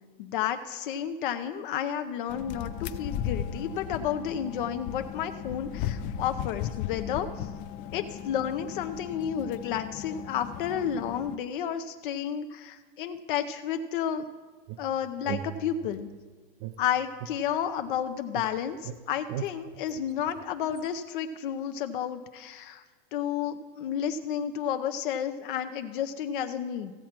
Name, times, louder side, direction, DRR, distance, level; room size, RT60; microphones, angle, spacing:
voice 1, 0.2-7.5 7.9-14.3 14.8-16.1 16.8-22.8 23.1-26.9, left 9 dB, 60° left, 8 dB, 0.7 m, -31 dB
sound 1, 2.3-11.4, left 10 dB, 30° left, 0.3 m, -36 dB
sound 2, 14.7-16.1 16.6-18.0 18.3-20.9, right 10 dB, 40° right, 0.5 m, -40 dB
15.5 x 7.3 x 4.4 m, 1.3 s
hypercardioid pair, 135°, 29 cm